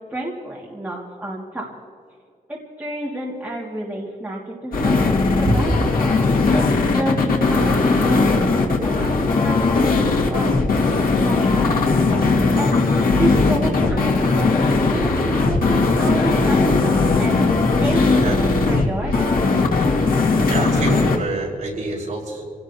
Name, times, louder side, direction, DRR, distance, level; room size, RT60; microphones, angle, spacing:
voice 1, 0.1-1.7 2.5-6.4 6.9-10.5 11.2-17.4 17.8-19.6, right 1 dB, 10° right, -4 dB, 2.0 m, -30 dB
sound 1, 4.7-21.2, left 3 dB, 85° left, 2.0 m, -18 dB
voice 2, 5.4-5.8 16.0-16.4 18.2-18.4 20.5-22.4, right 2 dB, 55° right, -2 dB, 5.0 m, -25 dB
27.5 x 17.5 x 2.8 m, 2.4 s
wide cardioid pair, 180°, 15 cm